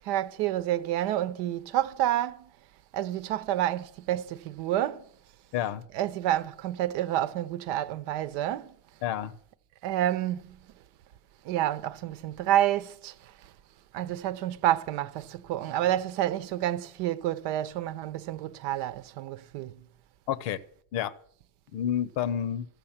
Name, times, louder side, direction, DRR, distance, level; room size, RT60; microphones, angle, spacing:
voice 1, 0.0-2.5 2.9-5.1 5.9-8.8 9.8-10.6 11.4-13.3 13.9-19.8, right 12 dB, 65° right, 0.9 m, -29 dB
voice 2, 5.5-5.8 9.0-9.3 20.3-20.6 20.9-21.2 21.7-22.7, left 10 dB, 70° left, 0.9 m, -29 dB
13.5 x 6.8 x 7.2 m
supercardioid pair, 95°, 45 cm